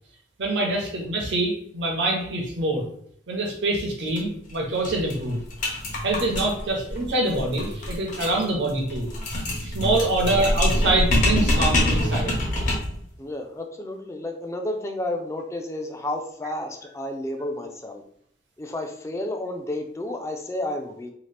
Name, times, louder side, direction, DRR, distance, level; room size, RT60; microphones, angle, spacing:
voice 1, 0.4-2.8 3.3-5.4 6.0-9.1 9.6-12.4, right 2 dB, 85° right, 0 dB, 0.6 m, -25 dB
sound 1, 4.1-4.2 4.5-4.6 4.8-13.0, left 1 dB, 45° left, 0.7 m, -25 dB
voice 2, 13.2-18.0 18.6-21.1, left 1 dB, 15° left, 4 dB, 0.3 m, -31 dB
2.8 x 2.3 x 3.2 m, 0.67 s
head